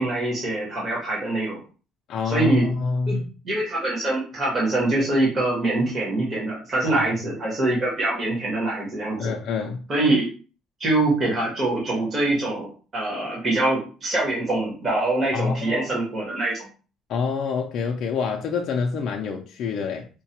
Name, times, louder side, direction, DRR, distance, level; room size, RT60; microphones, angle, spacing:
voice 1, 0.0-1.6 2.2-2.6 3.1-3.2 3.4-9.3 9.9-10.3 10.8-16.7, right 2 dB, 25° right, 1.1 m, -24 dB
voice 2, 2.1-3.3 6.8-7.2 9.2-9.9 15.3-15.9 17.1-20.1, left 5 dB, 45° left, 0.4 m, -27 dB
4.6 x 2.2 x 2.8 m
cardioid pair, 175°, 0 cm